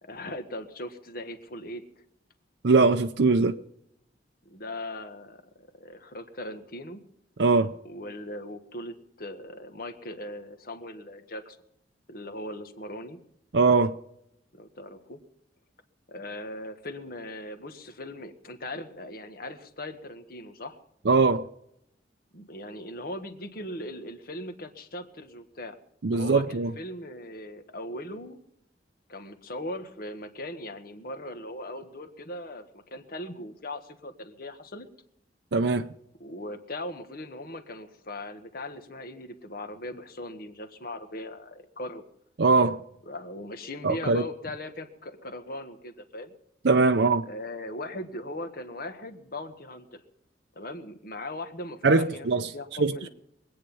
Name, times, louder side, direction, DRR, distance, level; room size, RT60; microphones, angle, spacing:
voice 1, 0.0-1.8 4.4-7.0 7.8-11.6 12.1-13.2 14.5-15.2 16.1-20.8 22.3-25.8 26.1-28.4 29.1-34.9 36.2-42.0 43.1-46.3 47.2-50.0 50.5-53.1, left 1 dB, 55° left, 1.6 m, -39 dB
voice 2, 2.6-3.6 7.4-7.7 13.5-13.9 21.1-21.5 26.0-26.7 35.5-35.9 42.4-42.8 43.8-44.2 46.6-47.3 51.8-52.5 52.8-53.0, right 3 dB, 70° right, 0.6 m, -21 dB
23.0 x 9.1 x 5.5 m
head